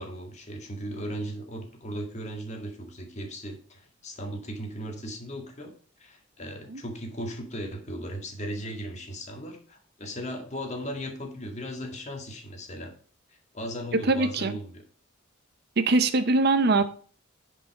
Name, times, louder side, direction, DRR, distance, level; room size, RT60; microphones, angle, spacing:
voice 1, 0.0-5.7 6.0-12.9 13.3-14.8 16.8-16.9, equal, 35° left, 3 dB, 2.0 m, -37 dB
voice 2, 14.1-14.6 15.8-16.8, right 3 dB, 50° right, 11 dB, 0.7 m, -22 dB
10.0 x 5.4 x 4.6 m, 0.42 s
head